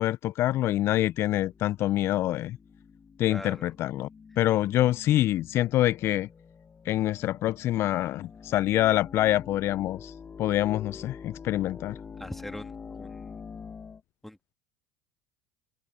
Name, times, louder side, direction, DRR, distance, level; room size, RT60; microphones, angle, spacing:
voice 1, 0.0-2.6 3.2-4.1 4.4-6.3 6.9-10.1 10.4-12.0, left 14 dB, 50° left, 0.7 m, -26 dB
sound 1, 0.6-14.0, left 6 dB, 25° left, 1.6 m, -46 dB
voice 2, 3.3-3.7 12.2-13.4 14.2-14.4, left 1 dB, 5° left, 2.9 m, -42 dB
open air
figure-of-eight pair, 70°, 6 cm